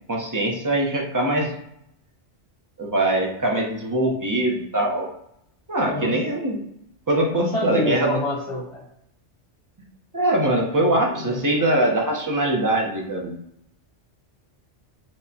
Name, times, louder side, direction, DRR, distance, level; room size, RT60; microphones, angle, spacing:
voice 1, 0.1-1.5 2.8-5.1 5.7-6.6 7.1-8.2 10.1-13.3, right 1 dB, 25° right, -1 dB, 0.4 m, -22 dB
voice 2, 7.3-8.8 10.4-11.4, left 1 dB, 75° left, -5 dB, 1.8 m, -28 dB
4.5 x 2.1 x 2.7 m, 0.74 s
omnidirectional pair, 1.2 m